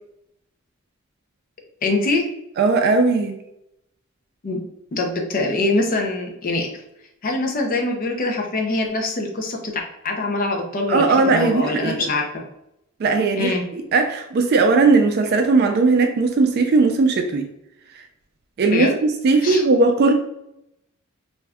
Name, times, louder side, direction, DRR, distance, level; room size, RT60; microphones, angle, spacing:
voice 1, 1.8-2.2 4.4-4.6 4.9-6.7 7.2-9.7 10.0-12.4 13.4-13.6 18.7-18.9 19.4-19.6, left 2 dB, 45° left, 2 dB, 0.5 m, -23 dB
voice 2, 2.6-3.4 10.9-12.1 13.0-13.5 13.9-17.5 18.6-20.1, right 3 dB, 50° right, 5 dB, 0.3 m, -18 dB
2.5 x 2.2 x 3.4 m, 0.82 s
head